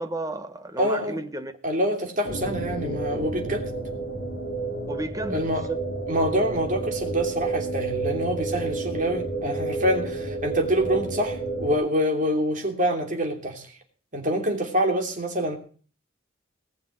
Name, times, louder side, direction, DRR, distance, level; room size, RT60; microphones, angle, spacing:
voice 1, 0.0-1.5 4.9-5.8, right 1 dB, 15° right, 1.2 m, -33 dB
voice 2, 0.8-1.2 1.6-3.7 5.3-5.7 6.1-13.7 14.1-15.6, equal, 40° right, 3.0 m, -26 dB
sound 1, 2.2-11.7, right 2 dB, 75° left, 4.5 m, -30 dB
19.0 x 6.8 x 7.8 m
head